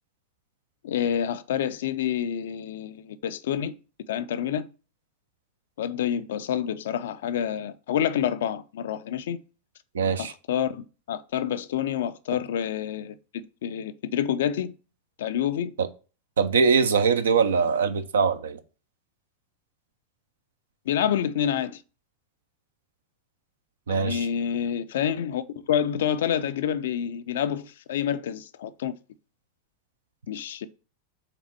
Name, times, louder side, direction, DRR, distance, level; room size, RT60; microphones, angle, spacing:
voice 1, 0.8-3.7 4.1-4.7 5.8-9.4 10.2-14.7 15.2-15.7 20.9-21.8 23.9-25.4 25.7-28.9 30.3-30.7, left 9 dB, 60° left, 0.5 m, -28 dB
voice 2, 9.9-10.3 15.8-15.9 16.4-18.6 23.9-24.3, right 5 dB, 65° right, 0.7 m, -22 dB
5.9 x 4.0 x 4.5 m
figure-of-eight pair, 90°, 0 cm